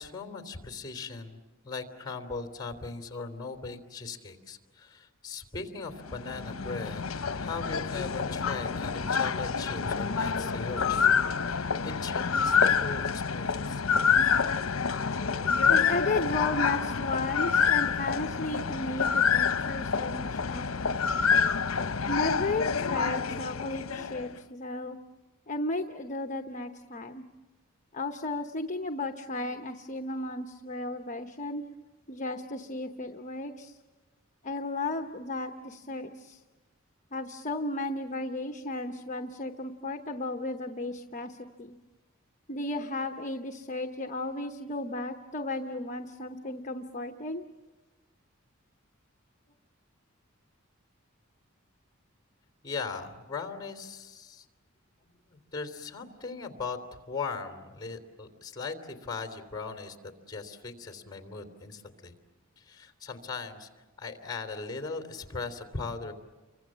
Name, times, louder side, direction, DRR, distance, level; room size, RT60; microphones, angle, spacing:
voice 1, 0.0-1.4 1.6-11.1 11.5-13.8 52.6-54.4 55.3-62.1 62.7-63.7 64.0-66.1, left 4 dB, 20° left, 7 dB, 3.1 m, -39 dB
sound 1, 5.9-24.3, left 6 dB, 75° left, 0.8 m, -27 dB
voice 2, 15.7-21.0 22.1-25.0 25.5-27.2 27.9-31.6 32.1-33.8 34.4-36.4 37.1-41.8 42.5-47.4, left 2 dB, 35° left, 5 dB, 0.9 m, -34 dB
30.0 x 24.5 x 7.4 m, 1.2 s
head